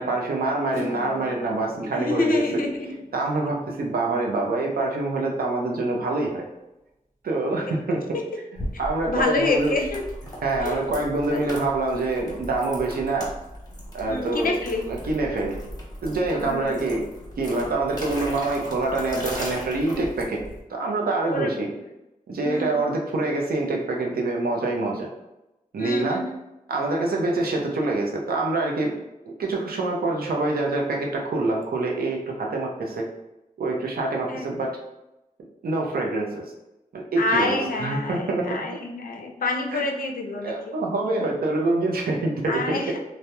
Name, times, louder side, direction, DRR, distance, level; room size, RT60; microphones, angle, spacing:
voice 1, 0.0-2.4 3.1-6.4 7.2-8.2 8.8-9.8 10.4-13.3 13.9-14.5 14.9-15.6 16.0-17.0 17.4-20.4 20.7-21.7 22.3-25.1 25.7-26.3 26.7-28.9 29.2-33.1 33.6-34.8 35.6-36.4 36.9-38.7 39.7-39.9 40.4-43.0, right 2 dB, 85° right, -1 dB, 0.5 m, -25 dB
Acoustic guitar / Strum, 0.7-6.2, equal, 40° right, 1.1 m, -44 dB
voice 2, 1.8-3.0 8.1-8.2 9.1-10.0 10.6-10.9 11.3-11.4 14.0-14.9 16.3-16.8 21.2-21.7 22.4-22.9 25.8-26.4 34.3-34.5 37.2-40.8 42.5-43.0, left 2 dB, 70° left, 2 dB, 0.4 m, -27 dB
sound 1, 8.6-20.6, equal, 25° left, 0.9 m, -38 dB
2.8 x 2.0 x 2.2 m, 0.95 s
cardioid pair, 55°, 15 cm